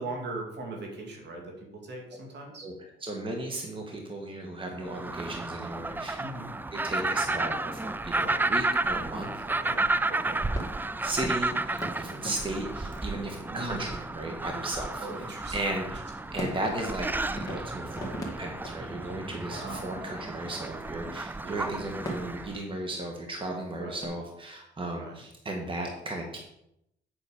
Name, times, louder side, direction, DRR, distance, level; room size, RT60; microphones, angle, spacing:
voice 1, 0.0-2.7 6.2-6.6 9.6-10.4 13.5-14.0 15.0-15.6 16.2-16.3 19.5-19.9 21.4-21.8 23.8-24.0 25.0-25.2, right 2 dB, 60° right, 1 dB, 2.4 m, -39 dB
voice 2, 2.6-6.2 6.7-9.3 10.7-15.1 15.5-26.4, right 1 dB, 25° right, 1 dB, 1.7 m, -36 dB
sound 1, 4.9-22.6, right 2 dB, 10° right, 0.3 m, -32 dB
sound 2, 10.0-24.1, equal, 20° left, 2.3 m, -43 dB
8.1 x 6.3 x 5.1 m, 0.80 s
cardioid pair, 90°, 20 cm